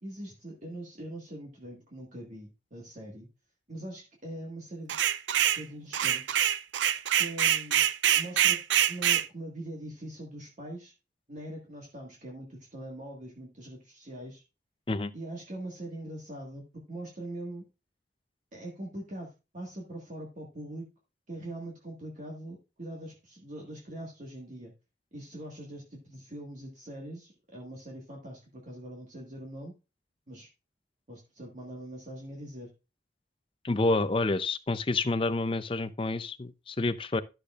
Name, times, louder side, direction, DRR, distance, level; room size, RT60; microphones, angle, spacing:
voice 1, 0.0-3.3 3.7-5.0 5.6-6.5 7.2-7.8 8.1-8.6 8.9-10.9 11.3-14.4 15.1-17.6 18.5-20.9 21.3-24.7 25.1-29.7 30.3-30.5 31.1-32.7, right 1 dB, 45° right, 1.7 m, -42 dB
sound 1, 4.9-5.6 5.9-9.3, right 11 dB, 85° right, 0.5 m, -25 dB
voice 2, 33.6-37.2, left 2 dB, 30° left, 0.5 m, -28 dB
12.0 x 6.6 x 2.4 m
head